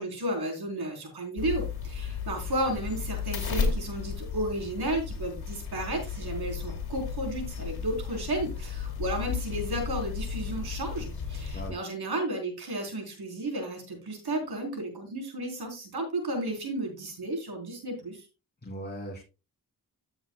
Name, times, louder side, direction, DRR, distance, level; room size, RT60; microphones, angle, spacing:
voice 1, 0.0-18.2, right 1 dB, 70° right, 3 dB, 3.9 m, -33 dB
sound 1, 1.4-11.7, left 6 dB, 65° left, 2.4 m, -34 dB
voice 2, 18.6-19.2, equal, 25° left, 0 dB, 2.8 m, -38 dB
14.5 x 7.1 x 2.3 m, 0.29 s
cardioid pair, 75°, 40 cm